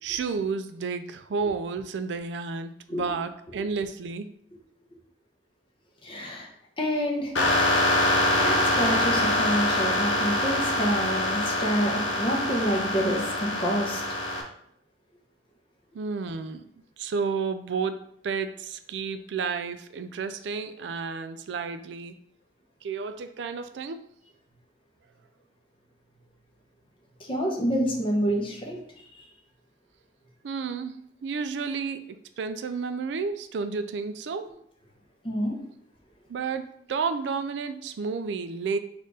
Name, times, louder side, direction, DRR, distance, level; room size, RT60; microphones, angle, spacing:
voice 1, 0.0-4.3 15.9-16.7 17.0-18.0 18.2-22.1 22.8-24.0 30.4-32.0 32.4-34.4 36.3-38.8, right 5 dB, 75° right, 10 dB, 0.4 m, -31 dB
voice 2, 6.0-6.5 6.8-7.3 8.3-14.0 27.3-28.8 35.2-35.5, equal, 30° left, 0 dB, 1.0 m, -27 dB
sound 1, 7.4-14.4, left 1 dB, 85° left, 0.8 m, -24 dB
4.3 x 2.6 x 4.8 m, 0.69 s
head